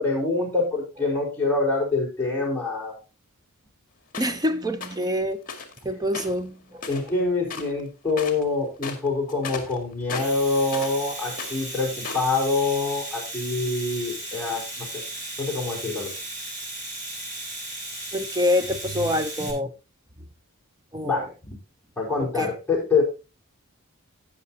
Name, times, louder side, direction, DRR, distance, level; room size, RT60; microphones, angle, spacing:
voice 1, 0.0-3.0 6.9-14.9 15.4-16.1 21.0-21.3 22.0-23.0, left 3 dB, 10° left, 4.7 m, -25 dB
sound 1, 4.1-4.4 4.8-5.0 5.5-5.8 6.1-7.2 7.5-7.8 8.1-8.4 8.8-11.0 11.3-12.3, left 4 dB, 40° left, 2.0 m, -36 dB
voice 2, 4.2-5.4 5.8-6.9 8.1-8.3 18.1-19.7 20.9-21.3 22.2-22.5, left 1 dB, 15° right, 0.7 m, -26 dB
Domestic sounds home sounds, 10.0-19.5, right 1 dB, 35° right, 4.1 m, -36 dB
18.0 x 6.4 x 2.8 m
head